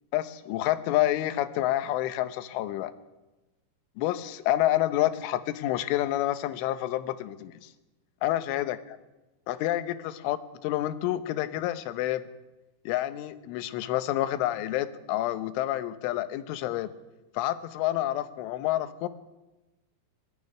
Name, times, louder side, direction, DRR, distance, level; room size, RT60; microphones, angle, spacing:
voice 1, 0.1-2.9 4.0-7.7 8.2-8.8 9.5-10.4 10.6-12.3 12.9-16.9 17.3-19.1, left 14 dB, 90° left, 12 dB, 3.4 m, -28 dB
20.5 x 13.5 x 9.7 m, 1.1 s
omnidirectional pair, 5.4 m